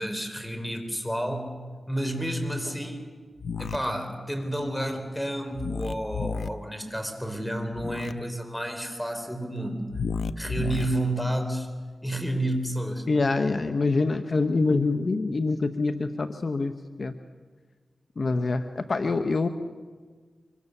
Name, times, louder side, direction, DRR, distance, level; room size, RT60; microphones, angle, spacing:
voice 1, 0.0-1.6 1.9-3.1 3.6-9.9 10.4-11.7 12.0-13.1, right 1 dB, 5° left, 5 dB, 4.6 m, -30 dB
sound 1, 3.4-3.8 5.6-6.5 7.7-8.1 9.9-10.9, left 5 dB, 85° left, 0.7 m, -31 dB
voice 2, 13.1-17.1 18.2-19.5, left 3 dB, 55° left, 8 dB, 1.0 m, -25 dB
25.0 x 24.0 x 6.8 m, 1.5 s
cardioid pair, 60°, 0 cm